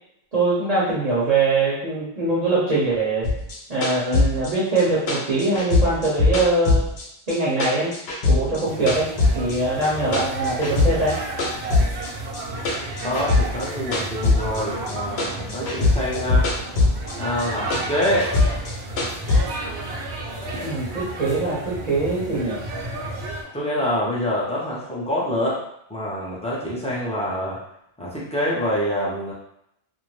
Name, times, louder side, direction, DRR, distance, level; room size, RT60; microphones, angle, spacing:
voice 1, 0.3-3.3 3.7-6.9 7.3-7.9 8.3-11.2 20.6-22.6, right 2 dB, 45° right, -8 dB, 0.7 m, -22 dB
sound 1, 3.2-7.3 7.6-9.6 9.8-11.1 11.4-14.9 15.2-17.1 17.4-19.4, left 3 dB, 75° left, 0.9 m, -21 dB
sound 2, 8.7-23.4, right 2 dB, 85° right, 0.9 m, -32 dB
voice 2, 13.0-16.5 17.2-18.3 23.5-25.6 25.9-27.6 28.0-29.3, equal, 10° left, -7 dB, 0.5 m, -26 dB
2.5 x 2.1 x 3.1 m, 0.76 s
omnidirectional pair, 1.1 m